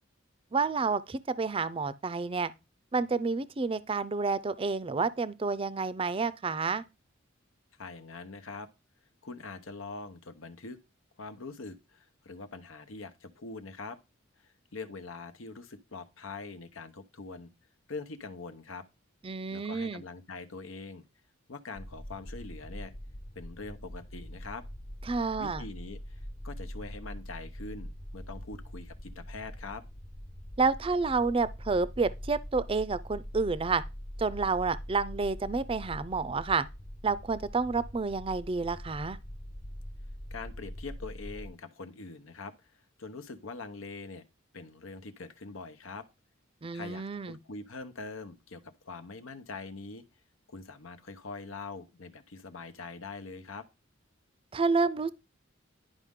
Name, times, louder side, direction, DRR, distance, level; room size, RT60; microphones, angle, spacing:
voice 1, 0.5-2.5 2.9-6.8 19.2-20.0 25.1-25.6 30.6-33.8 34.2-36.6 37.0-39.2 46.6-47.4 54.5-55.1, right 4 dB, 25° right, 0.5 m, -29 dB
voice 2, 7.8-8.7 9.2-10.8 11.2-14.0 14.4-17.5 17.9-18.8 19.5-21.0 21.5-22.9 23.3-24.6 25.4-29.8 40.3-42.7 43.0-44.2 44.5-46.1 46.7-50.0 50.5-53.7, left 3 dB, 90° left, 1.0 m, -43 dB
sound 1, 21.8-41.5, equal, 25° left, 0.7 m, -43 dB
11.0 x 5.2 x 3.7 m
head